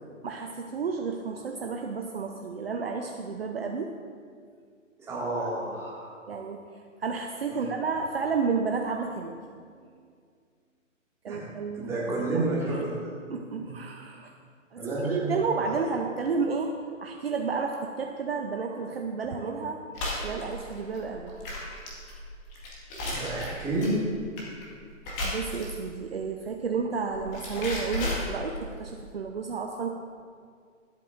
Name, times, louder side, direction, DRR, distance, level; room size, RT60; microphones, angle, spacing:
voice 1, 0.2-3.9 6.3-9.4 9.8-9.9 11.2-11.9 12.2-12.3 12.7-12.8 13.3-14.3 14.7-19.8 20.2-21.3 25.2-29.9, right 5 dB, 50° right, 3 dB, 0.8 m, -31 dB
voice 2, 5.0-6.1 7.5-7.6 11.3-11.5 11.7-12.9 13.6-13.7 14.8-15.7 23.0-23.9, right 2 dB, 5° right, -7 dB, 2.1 m, -30 dB
sound 1, 19.9-25.9 27.0-28.8, left 1 dB, 20° left, 1.8 m, -34 dB
24.0 x 8.3 x 2.6 m, 2.1 s
figure-of-eight pair, 135°, 39 cm